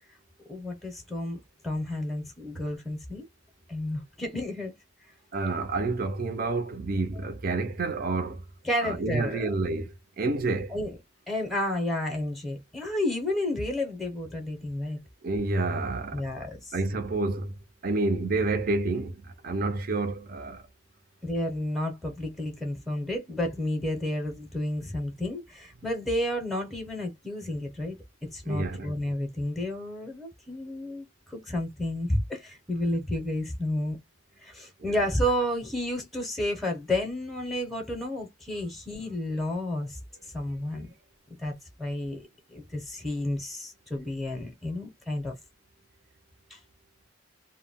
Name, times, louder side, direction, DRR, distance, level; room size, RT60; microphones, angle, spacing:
voice 1, 0.5-3.2 3.7-4.7 8.6-9.5 10.7-10.9 11.3-15.0 16.1-16.7 21.2-28.0 28.2-34.0 34.4-40.0 40.3-40.9 41.4-45.4 46.5-46.6, left 1 dB, ahead, 0.7 m, -31 dB
voice 2, 5.3-8.4 8.8-10.8 15.2-16.3 16.7-17.5 17.8-20.6 28.5-28.9 34.8-34.9, right 3 dB, 45° right, 0.5 m, -29 dB
2.2 x 2.1 x 3.4 m
head